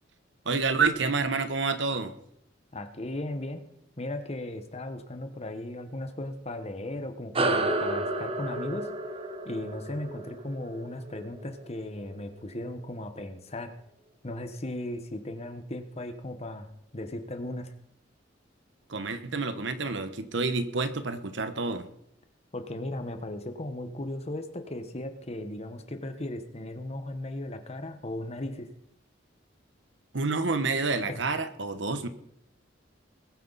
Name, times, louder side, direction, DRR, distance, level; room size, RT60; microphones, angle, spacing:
voice 1, 0.4-2.1 18.9-21.8 30.1-32.1, right 4 dB, 70° right, 10 dB, 1.1 m, -28 dB
voice 2, 2.7-3.7 4.0-8.9 9.4-13.7 14.2-16.7 16.9-17.7 22.5-28.7 31.1-31.2, left 1 dB, 35° left, 8 dB, 1.3 m, -36 dB
sound 1, 7.3-12.2, right 2 dB, 30° right, 1.1 m, -31 dB
20.5 x 9.4 x 4.1 m, 0.75 s
head